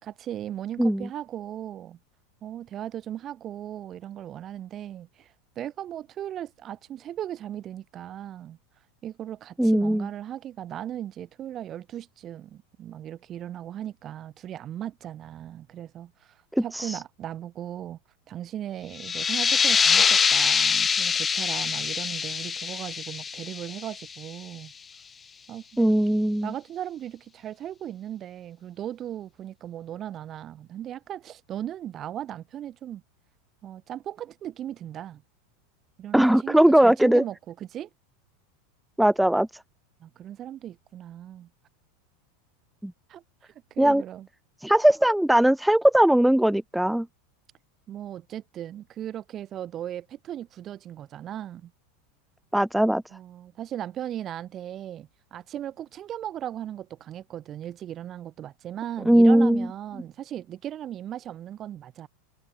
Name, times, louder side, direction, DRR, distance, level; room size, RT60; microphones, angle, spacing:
voice 1, 0.0-2.0 2.4-8.6 9.0-16.4 16.6-18.0 18.3-24.7 25.5-25.9 26.4-33.0 33.6-35.2 36.0-37.9 40.0-41.5 43.1-44.3 47.9-51.7 53.1-62.1, right 11 dB, 35° right, 4.9 m, -37 dB
voice 2, 9.6-10.1 16.5-17.0 25.8-26.5 36.1-37.2 39.0-39.5 42.8-42.9 43.8-44.0 44.6-47.1 52.5-53.0 59.1-59.7, right 1 dB, 5° right, 0.6 m, -19 dB
sound 1, 18.9-24.3, left 6 dB, 20° left, 3.2 m, -24 dB
hypercardioid pair, 110°, 0 cm